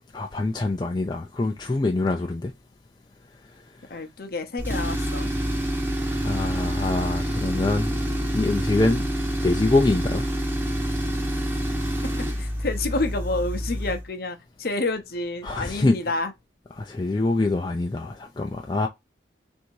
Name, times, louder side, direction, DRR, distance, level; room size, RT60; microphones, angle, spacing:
voice 1, 0.1-2.5 6.2-7.9 8.3-9.1 9.4-10.3 15.4-16.0 16.8-18.9, left 2 dB, 25° left, 0.3 m, -24 dB
voice 2, 3.9-5.3 12.4-16.3, left 2 dB, 50° left, 0.7 m, -29 dB
Tools, 4.6-14.1, equal, 10° right, 0.8 m, -27 dB
3.4 x 2.6 x 4.5 m
head